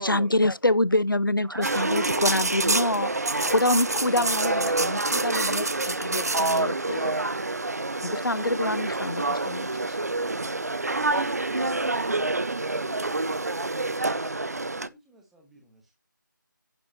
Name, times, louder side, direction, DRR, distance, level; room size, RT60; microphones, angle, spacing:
voice 1, 0.0-7.1 8.0-9.7, left 1 dB, 80° left, 0.9 m, -26 dB
voice 2, 1.5-1.9 3.5-3.6 4.1-4.9 5.4-5.6 5.9-6.0 6.3-7.3 8.1-8.2 9.7-9.8 11.1-11.3 11.5-12.8 13.4-14.5, right 2 dB, 85° right, 0.6 m, -32 dB
sound 1, 1.6-14.9, right 2 dB, 50° right, 0.9 m, -27 dB
voice 3, 12.7-16.0, right 1 dB, ahead, 1.0 m, -53 dB
10.5 x 10.0 x 2.7 m
figure-of-eight pair, 165°, 11 cm